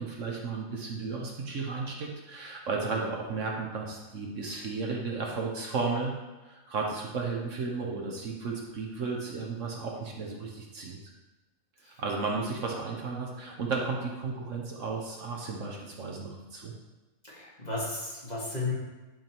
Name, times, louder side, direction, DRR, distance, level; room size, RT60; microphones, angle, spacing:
voice 1, 0.0-6.1 6.4-11.0 12.0-16.7, right 4 dB, 60° right, -1 dB, 1.3 m, -34 dB
voice 2, 17.3-18.7, left 3 dB, 30° left, -6 dB, 2.0 m, -33 dB
10.5 x 3.6 x 4.5 m, 1.1 s
omnidirectional pair, 1.5 m